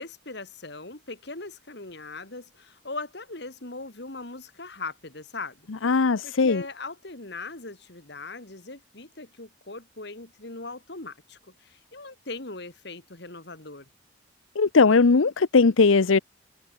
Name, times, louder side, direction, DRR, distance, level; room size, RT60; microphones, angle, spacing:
voice 1, 0.0-6.0 6.2-13.9, left 3 dB, 55° left, 2.4 m, -40 dB
voice 2, 5.8-6.6 14.6-16.2, left 4 dB, 85° left, 0.7 m, -19 dB
head